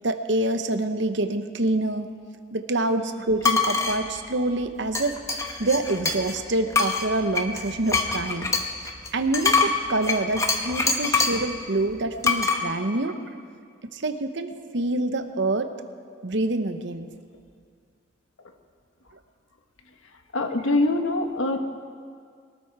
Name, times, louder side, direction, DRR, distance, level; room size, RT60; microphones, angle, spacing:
voice 1, 0.0-2.1 2.5-8.5 8.8-13.4 13.9-15.7 16.2-17.1, right 2 dB, 60° right, 8 dB, 0.9 m, -26 dB
sound 1, 3.4-4.0 4.9-6.4 6.7-11.5 12.2-12.6, left 4 dB, 15° left, 1.0 m, -24 dB
voice 2, 20.3-21.6, left 2 dB, 85° left, 5 dB, 1.4 m, -23 dB
22.0 x 13.0 x 4.8 m, 2.1 s
head